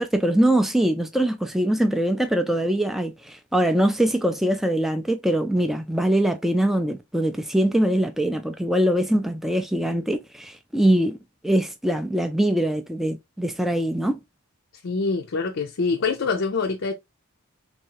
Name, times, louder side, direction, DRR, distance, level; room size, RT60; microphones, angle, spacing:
voice 1, 0.0-11.2 11.4-14.2, right 1 dB, ahead, 0.3 m, -22 dB
voice 2, 14.8-16.9, left 4 dB, 60° left, 0.5 m, -25 dB
3.2 x 2.8 x 4.6 m
head